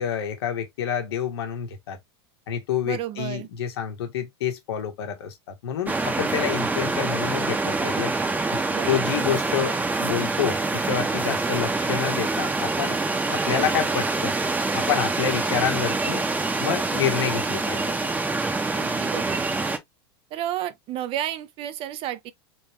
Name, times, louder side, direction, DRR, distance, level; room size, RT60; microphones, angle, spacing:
voice 1, 0.0-2.0 2.5-5.3 5.6-8.1 8.5-13.0 13.2-14.4 14.7-16.2 16.6-17.9, left 8 dB, 80° left, 1.4 m, -28 dB
voice 2, 2.8-3.5 8.7-9.2 18.8-19.5 20.3-22.3, right 11 dB, 45° right, 0.6 m, -32 dB
sound 1, 5.9-19.8, right 3 dB, 15° right, 0.9 m, -25 dB
3.8 x 3.4 x 3.0 m
hypercardioid pair, 110°, 13 cm